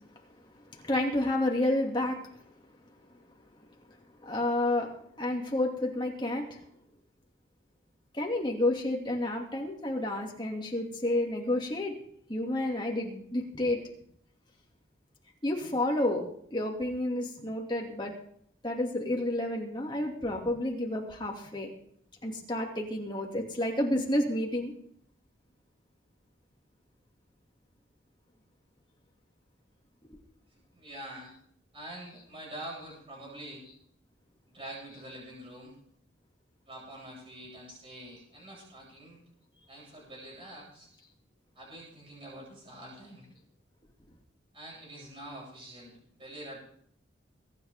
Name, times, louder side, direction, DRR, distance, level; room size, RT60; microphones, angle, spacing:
voice 1, 0.7-2.4 4.2-4.9 5.2-6.6 8.1-12.0 12.3-13.8 15.4-16.2 16.5-18.2 18.6-21.7 22.2-24.7 30.0-30.2, left 1 dB, 25° left, 0 dB, 2.5 m, -30 dB
voice 2, 30.7-31.3 31.7-33.6 34.5-35.7 36.7-39.2 39.7-40.9 41.5-43.3 44.5-46.6, right 1 dB, 30° right, -4 dB, 8.0 m, -45 dB
22.5 x 10.5 x 3.7 m, 0.65 s
head